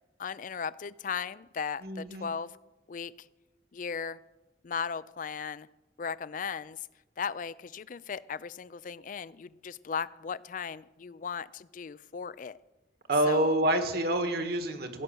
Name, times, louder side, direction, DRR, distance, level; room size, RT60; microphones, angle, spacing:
voice 1, 0.2-2.5 2.9-3.3 3.7-4.2 4.6-5.7 6.0-6.8 7.2-12.6 13.3-13.5, left 6 dB, 45° left, 19 dB, 0.4 m, -37 dB
voice 2, 1.8-2.3 13.1-15.0, right 1 dB, 55° right, 7 dB, 1.5 m, -27 dB
16.0 x 6.4 x 9.1 m, 1.1 s
head